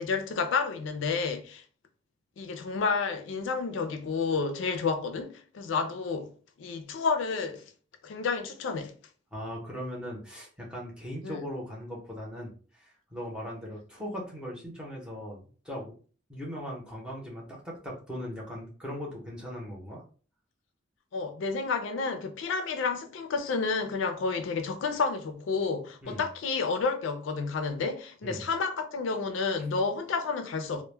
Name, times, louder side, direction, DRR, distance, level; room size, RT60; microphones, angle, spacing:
voice 1, 0.0-1.6 2.4-6.3 6.6-7.6 8.0-8.9 11.2-11.4 21.1-30.8, left 4 dB, 80° left, 0.4 m, -30 dB
voice 2, 9.3-12.5 12.8-15.9 16.3-20.0 26.0-26.2 28.2-28.4, equal, 5° right, 0.7 m, -39 dB
2.1 x 2.1 x 3.1 m
head